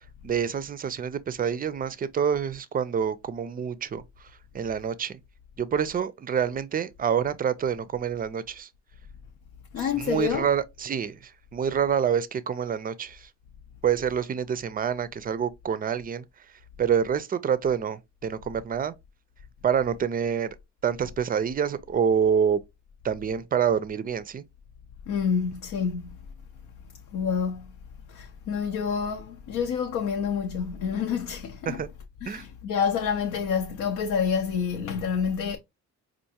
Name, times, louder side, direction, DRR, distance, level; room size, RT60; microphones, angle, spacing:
voice 1, 0.2-4.0 4.5-5.2 5.6-8.7 9.8-11.2 11.5-13.2 13.8-16.2 16.8-18.9 19.6-20.6 20.8-22.6 23.0-24.4 31.7-31.9 32.3-32.4, right 7 dB, 30° right, 0.4 m, -27 dB
voice 2, 9.7-10.5 25.1-26.2 27.1-27.7 28.1-31.8 32.2-35.6, left 6 dB, 75° left, 0.6 m, -28 dB
4.5 x 2.5 x 2.7 m
cardioid pair, 90°, 30 cm